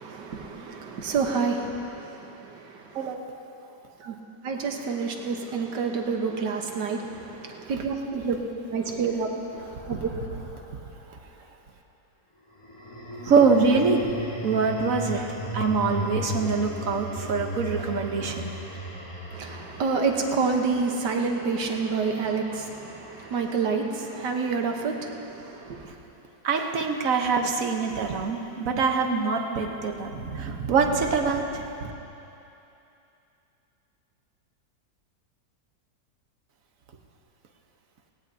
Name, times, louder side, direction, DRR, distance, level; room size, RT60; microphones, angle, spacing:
voice 1, 0.0-3.1 4.0-4.2 4.4-8.4 8.7-9.3 9.5-9.8 10.0-10.1 19.3-25.9, right 5 dB, 70° right, 3 dB, 1.7 m, -28 dB
sound 1, 8.4-10.9 12.5-24.8, equal, 20° left, 1.4 m, -37 dB
voice 2, 13.2-14.1 14.4-15.3 15.5-18.5 26.4-31.6, right 4 dB, 55° right, 3 dB, 1.3 m, -24 dB
18.5 x 18.0 x 2.8 m, 2.9 s
omnidirectional pair, 2.0 m